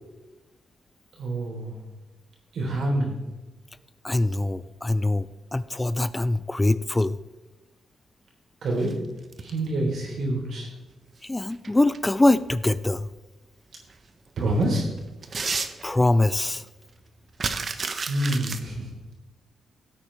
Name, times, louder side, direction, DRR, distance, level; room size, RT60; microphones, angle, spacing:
voice 1, 1.2-1.7 2.5-3.1 8.6-9.0 9.4-10.7 14.4-14.9 18.1-18.9, right 1 dB, 70° right, -1 dB, 3.7 m, -26 dB
voice 2, 4.0-5.3 5.5-7.2 11.2-13.1 15.8-16.6, left 2 dB, 15° left, 15 dB, 0.3 m, -23 dB
sound 1, 8.7-9.7 11.3-12.0 12.5-12.6 13.9-14.0 14.4-16.2 16.6-16.7 16.9-18.6, right 4 dB, 40° right, 0.8 m, -32 dB
16.0 x 8.5 x 3.4 m, 1.1 s
cardioid pair, 95°, 0 cm